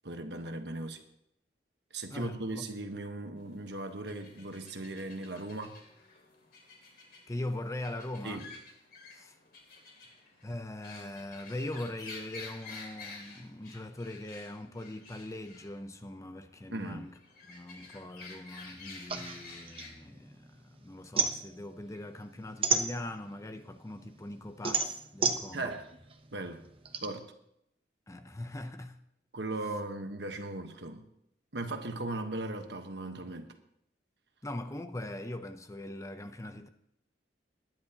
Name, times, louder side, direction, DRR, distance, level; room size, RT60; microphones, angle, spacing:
voice 1, 0.0-1.0 1.9-5.8 8.2-8.5 16.7-17.1 25.5-25.8 26.3-26.7 27.0-27.3 29.3-31.1 31.5-33.5, right 2 dB, 70° right, 1.3 m, -38 dB
voice 2, 2.1-2.6 7.3-8.5 9.1-9.4 10.4-17.2 17.5-25.7 28.1-29.0 34.4-36.7, left 1 dB, 15° left, 0.6 m, -41 dB
sound 1, 3.4-19.9, left 3 dB, 55° left, 3.0 m, -51 dB
sound 2, 19.1-20.6 20.9-23.4 23.9-27.1, right 5 dB, 30° right, 0.9 m, -31 dB
20.5 x 10.5 x 2.9 m
head